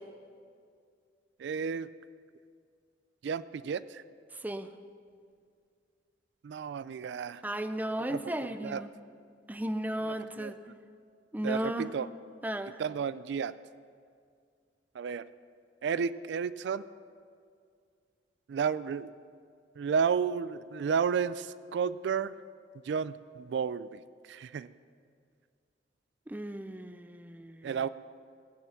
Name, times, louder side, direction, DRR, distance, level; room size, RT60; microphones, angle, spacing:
voice 1, 1.4-1.9 3.2-4.0 6.4-7.4 8.1-8.3 8.6-8.8 10.0-10.5 11.4-12.1 12.8-13.5 14.9-15.2 15.8-16.8 18.5-19.1 19.8-22.4 22.8-24.7 27.6-27.9, right 6 dB, 70° right, 16 dB, 0.3 m, -32 dB
voice 2, 4.3-4.7 7.4-8.9 9.5-10.6 11.3-11.9 12.4-12.8 26.3-27.7, right 1 dB, 10° right, 10 dB, 0.5 m, -35 dB
17.0 x 9.1 x 5.9 m, 2.2 s
head